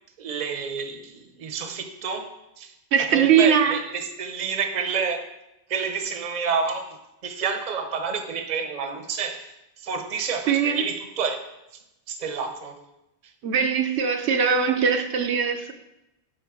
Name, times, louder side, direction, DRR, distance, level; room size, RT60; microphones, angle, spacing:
voice 1, 0.2-2.7 3.0-5.2 5.7-9.5 9.8-11.4 12.1-12.9, right 5 dB, 45° right, 6 dB, 0.8 m, -29 dB
voice 2, 2.9-3.8 10.5-10.8 13.4-15.7, right 7 dB, 80° right, 6 dB, 1.0 m, -21 dB
7.7 x 5.2 x 4.8 m, 0.91 s
omnidirectional pair, 1.1 m